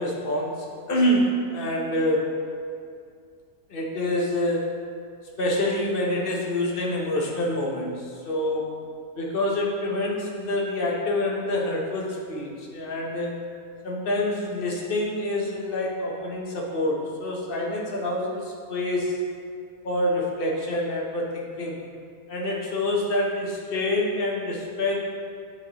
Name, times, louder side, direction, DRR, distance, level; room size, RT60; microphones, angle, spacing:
voice 1, 0.0-2.4 3.7-4.8 5.4-8.9 9.2-13.4 13.8-19.2 19.8-21.8 22.3-25.1, left 1 dB, 45° left, -2 dB, 1.0 m, -26 dB
9.5 x 4.6 x 3.0 m, 2.3 s
omnidirectional pair, 1.5 m